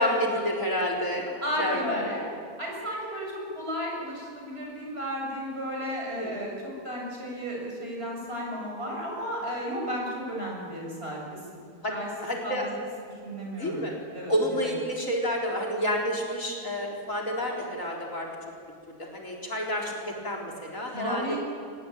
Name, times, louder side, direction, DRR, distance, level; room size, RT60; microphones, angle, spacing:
voice 1, 0.0-1.3 1.6-2.1 6.1-6.4 11.8-11.9 12.2-12.7 13.5-13.9 14.3-18.3 18.9-21.4, equal, 55° left, -1 dB, 4.4 m, -29 dB
voice 2, 1.4-2.2 2.6-6.6 6.8-11.6 11.9-12.1 12.4-12.7 13.2-13.8 14.1-14.3 14.6-14.7 20.9-21.4, equal, 40° right, -2 dB, 7.5 m, -33 dB
24.0 x 20.0 x 9.2 m, 2.2 s
omnidirectional pair, 1.7 m